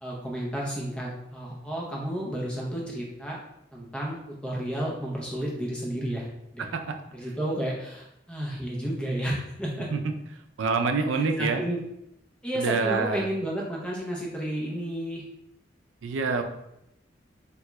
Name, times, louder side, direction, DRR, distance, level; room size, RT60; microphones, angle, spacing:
voice 1, 0.0-3.4 3.7-4.2 4.4-6.3 6.5-6.7 7.1-9.9 11.1-11.8 12.4-15.2, right 1 dB, 5° left, -3 dB, 0.6 m, -32 dB
voice 2, 6.6-7.0 9.9-10.0 10.6-11.6 12.5-13.2 16.0-16.4, right 4 dB, 85° right, 6 dB, 0.4 m, -26 dB
3.6 x 2.3 x 3.0 m, 0.82 s
head